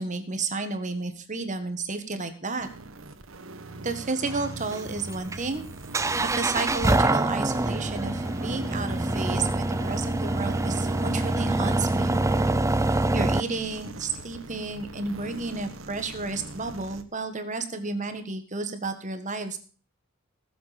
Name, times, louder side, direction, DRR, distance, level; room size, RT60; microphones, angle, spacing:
voice 1, 0.0-2.7 3.8-5.7 6.2-12.2 13.1-19.6, right 3 dB, 35° right, 9 dB, 1.6 m, -32 dB
sound 1, 2.6-17.0, right 2 dB, 70° right, 1.3 m, -41 dB
sound 2, 4.3-13.4, right 2 dB, 15° right, 0.5 m, -25 dB
18.5 x 7.7 x 5.2 m, 0.40 s
head